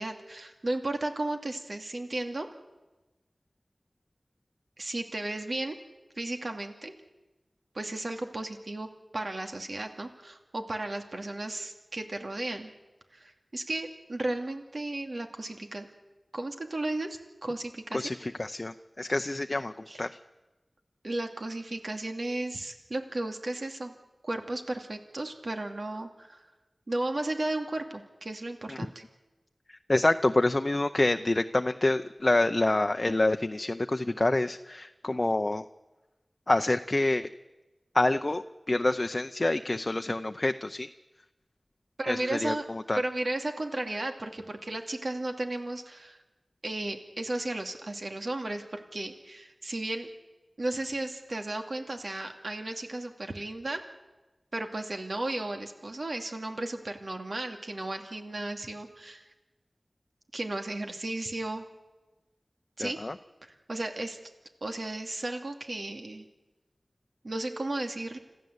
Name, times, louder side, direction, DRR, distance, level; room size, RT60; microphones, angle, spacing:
voice 1, 0.0-2.5 4.8-5.8 6.2-6.9 7.7-8.9 9.1-12.7 13.1-15.9 16.3-18.1 19.9-20.0 21.0-23.9 24.2-26.5 26.9-29.0 42.0-42.7 43.0-46.2 46.6-50.1 50.6-53.8 54.5-59.3 60.3-61.6 62.8-63.0 63.4-64.2 64.6-66.3 67.2-68.2, right 2 dB, 65° right, 5 dB, 2.5 m, -34 dB
voice 2, 17.9-20.1 28.7-28.8 29.7-35.6 36.5-37.3 37.9-40.9 42.1-43.0 62.8-63.1, left 2 dB, 45° left, 8 dB, 0.7 m, -27 dB
26.5 x 14.5 x 8.2 m, 1.1 s
wide cardioid pair, 50°, 0 cm